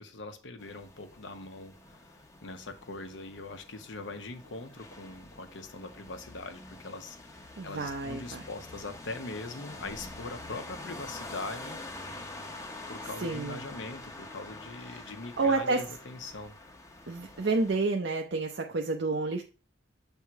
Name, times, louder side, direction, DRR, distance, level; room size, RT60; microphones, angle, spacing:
voice 1, 0.0-11.8 12.9-16.6, left 3 dB, 85° left, 7 dB, 1.0 m, -42 dB
sound 1, 0.6-17.8, left 2 dB, 15° left, 0.7 m, -46 dB
voice 2, 7.6-8.4 13.2-13.6 14.9-15.0 15.4-15.8 17.1-19.4, right 3 dB, 65° right, 3 dB, 0.6 m, -29 dB
7.3 x 3.6 x 4.6 m, 0.34 s
head